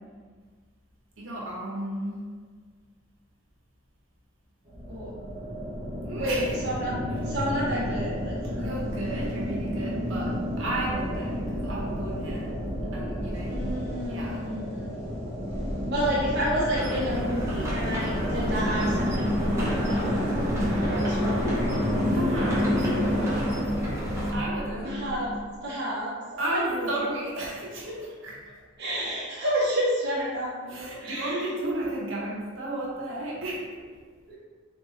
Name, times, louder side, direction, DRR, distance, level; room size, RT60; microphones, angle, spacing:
voice 1, 1.2-2.3 6.0-6.5 8.6-12.6 12.9-13.6 14.1-14.4 22.1-22.6 23.0-23.5 24.3-25.0 26.4-28.4 30.7-33.8, right 1 dB, 70° right, -4 dB, 1.0 m, -33 dB
sound 1, 4.6-23.6, equal, 35° right, 1.1 m, -30 dB
voice 2, 6.1-8.7 13.5-20.2 20.8-21.7 24.8-25.3 25.6-26.9 28.8-31.4 34.3-34.4, equal, 55° right, -9 dB, 0.7 m, -31 dB
sound 2, 16.7-24.3, equal, 15° right, 0.8 m, -34 dB
sound 3, 17.8-25.6, equal, 50° left, 0.6 m, -31 dB
3.7 x 3.4 x 3.0 m, 1.5 s
head